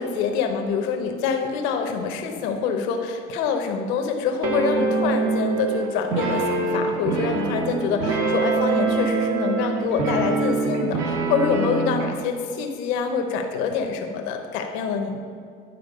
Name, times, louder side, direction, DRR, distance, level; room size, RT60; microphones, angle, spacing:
voice 1, 0.0-15.2, left 6 dB, 90° left, 4 dB, 0.9 m, -26 dB
sound 1, 4.4-12.2, right 3 dB, 85° right, 1.3 m, -24 dB
10.0 x 4.5 x 5.3 m, 2.2 s
cardioid pair, 115°, 19 cm